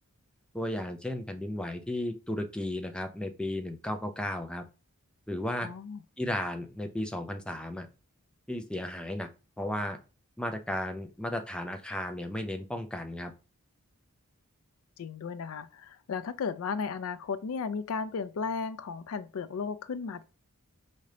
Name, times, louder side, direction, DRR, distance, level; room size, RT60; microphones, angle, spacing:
voice 1, 0.5-4.7 5.3-5.7 6.2-7.9 8.5-9.3 9.6-10.0 10.4-13.3, left 1 dB, 5° left, 0.4 m, -34 dB
voice 2, 5.6-6.0 15.0-20.2, left 5 dB, 75° left, 0.4 m, -35 dB
5.0 x 2.8 x 3.2 m
head